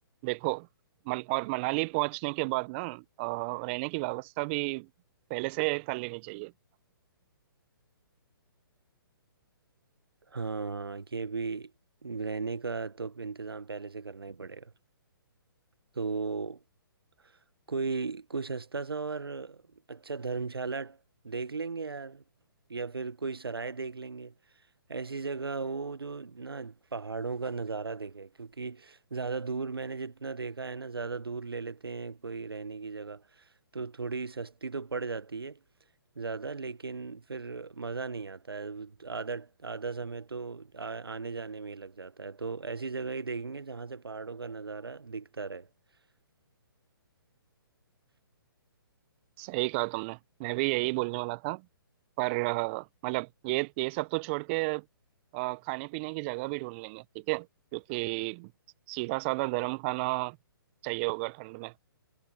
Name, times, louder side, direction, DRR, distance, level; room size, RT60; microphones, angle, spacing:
voice 1, 0.2-0.7 1.1-4.9 5.3-6.5 49.4-51.6 52.2-54.8 55.3-57.5 57.7-58.5 58.9-60.4 60.8-61.7, right 27 dB, 30° right, 1.0 m, -32 dB
voice 2, 10.3-11.7 12.0-14.7 15.9-16.6 17.7-19.6 19.9-21.0 21.2-22.2 22.7-24.3 24.9-33.5 33.7-35.6 36.2-45.7, right 4 dB, 80° right, 1.3 m, -36 dB
figure-of-eight pair, 130°, 12 cm